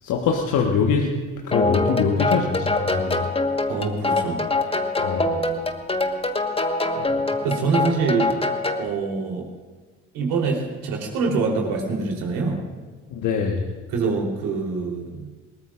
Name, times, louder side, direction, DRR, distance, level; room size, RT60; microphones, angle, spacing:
voice 1, 0.0-1.1 1.4-3.3 5.0-5.4 7.0-7.1 13.1-13.6, left 5 dB, 55° left, 1 dB, 1.5 m, -23 dB
sound 1, 1.5-8.9, left 2 dB, 15° left, 1.4 m, -24 dB
voice 2, 3.7-4.4 7.4-8.3 8.8-9.5 10.1-12.6 13.9-15.3, right 4 dB, 65° right, 0 dB, 3.7 m, -25 dB
21.5 x 19.0 x 2.5 m, 1.4 s
hypercardioid pair, 50°, 36 cm